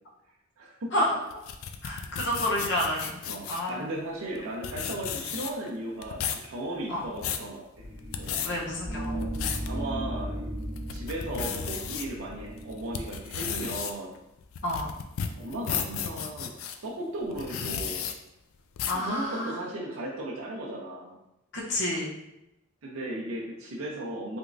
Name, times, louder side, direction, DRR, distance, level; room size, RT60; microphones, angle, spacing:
voice 1, 0.6-1.0 3.3-7.6 8.2-8.4 9.1-9.2 9.7-10.5 10.9-14.1 15.4-16.5 16.8-18.1 18.9-21.2 22.8-24.4, right 1 dB, 70° right, -4 dB, 0.5 m, -36 dB
sound 1, 1.3-3.7 4.4-4.5 4.6-5.7 6.0-6.5 6.9-7.5 8.0-8.5 9.0-9.7 10.2-10.3 10.8-12.1 12.6-16.8 17.3-18.1 18.8-19.1, left 7 dB, 70° left, 0.3 m, -33 dB
voice 2, 1.8-3.2 3.5-3.9 6.9-7.0 8.4-9.2 14.6-14.9 18.9-19.6 21.5-22.1, left 1 dB, 55° left, -4 dB, 0.8 m, -29 dB
sound 2, 7.7-13.7, right 1 dB, 30° right, 1.0 m, -36 dB
3.4 x 3.0 x 2.5 m, 0.88 s
head